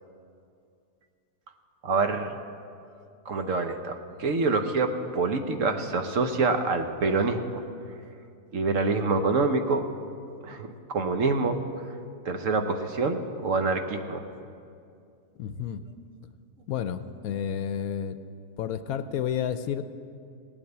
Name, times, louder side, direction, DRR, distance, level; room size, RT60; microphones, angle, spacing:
voice 1, 1.8-2.3 3.3-7.5 8.5-9.9 10.4-10.7 10.9-11.6 12.2-14.2, right 3 dB, 60° right, 6 dB, 1.2 m, -26 dB
voice 2, 15.4-15.8 16.7-18.2 18.6-19.8, left 8 dB, 75° left, 11 dB, 1.0 m, -30 dB
18.0 x 8.7 x 8.0 m, 2.5 s
omnidirectional pair, 1.7 m